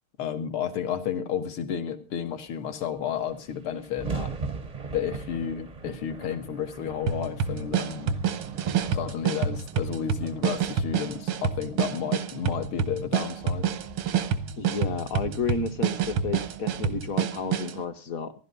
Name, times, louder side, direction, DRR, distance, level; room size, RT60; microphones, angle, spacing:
voice 1, 0.2-4.3 4.9-8.2 8.9-13.7, left 8 dB, 80° left, 7 dB, 2.3 m, -32 dB
sound 1, 2.8-2.9 3.1-17.4, right 4 dB, 40° right, 0.5 m, -41 dB
sound 2, 7.1-17.8, right 7 dB, 85° right, 1.9 m, -28 dB
voice 2, 14.6-18.3, left 5 dB, 55° left, 9 dB, 1.1 m, -31 dB
15.5 x 11.5 x 5.3 m, 0.36 s
omnidirectional pair, 2.4 m